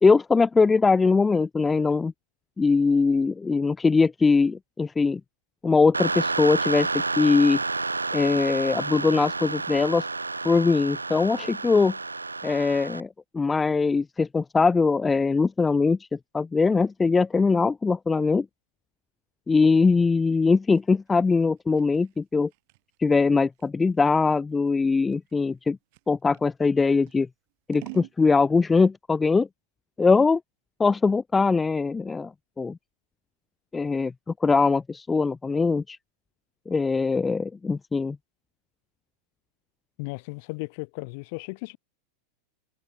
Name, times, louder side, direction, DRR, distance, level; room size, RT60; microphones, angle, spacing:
voice 1, 0.0-2.1 2.6-5.2 5.6-6.9 7.2-7.6 8.1-10.1 10.4-11.9 12.4-13.1 13.3-16.0 16.3-18.5 19.5-22.5 23.0-25.8 26.1-27.3 27.7-29.5 30.0-30.4 30.8-32.8 33.7-34.1 34.4-36.0 36.7-38.2, left 4 dB, 15° left, 1.1 m, -21 dB
sound 1, 5.9-13.0, right 3 dB, 80° right, 2.2 m, -30 dB
Scissors, 20.3-26.5 27.0-28.2, right 27 dB, 50° right, 5.8 m, -48 dB
voice 2, 40.0-41.8, left 30 dB, 45° left, 7.6 m, -35 dB
figure-of-eight pair, 90°, 0 cm